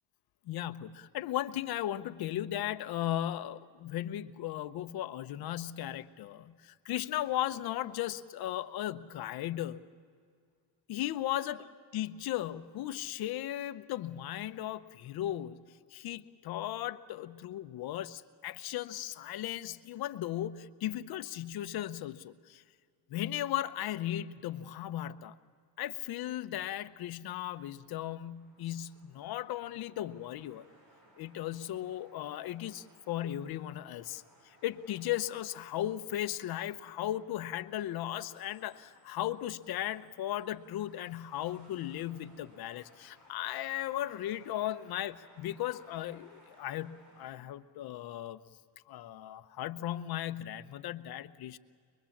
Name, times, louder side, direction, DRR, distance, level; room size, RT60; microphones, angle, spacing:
voice 1, 0.5-9.8 10.9-22.6 23.1-25.4 25.8-30.6 31.2-48.4 48.9-51.6, left 12 dB, 55° left, 10 dB, 0.8 m, -36 dB
sound 1, 27.6-47.3, right 1 dB, 60° right, 6.7 m, -63 dB
24.0 x 23.5 x 7.2 m, 2.1 s
cardioid pair, 175°, 45 cm